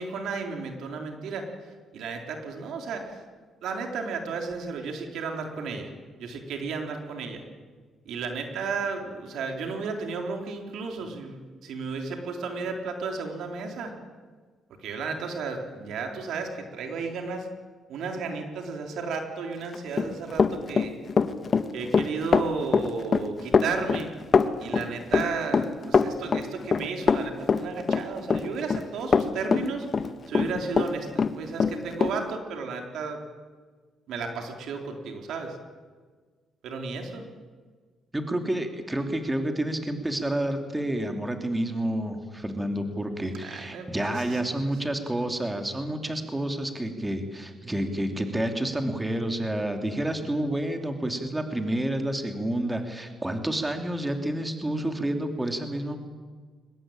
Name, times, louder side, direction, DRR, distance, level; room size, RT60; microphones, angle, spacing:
voice 1, 0.0-3.2 3.6-5.9 6.2-7.4 8.1-13.9 14.8-17.5 17.9-20.9 21.7-24.1 24.6-33.2 34.1-35.6 36.6-37.2 43.4-44.4, right 4 dB, 80° right, 3 dB, 3.9 m, -33 dB
Run, 19.7-30.9 31.2-32.1, left 5 dB, 40° left, 1.6 m, -23 dB
voice 2, 38.1-56.0, right 1 dB, 15° right, 5 dB, 3.0 m, -29 dB
23.0 x 20.5 x 8.9 m, 1.5 s
cardioid pair, 90°, 0 cm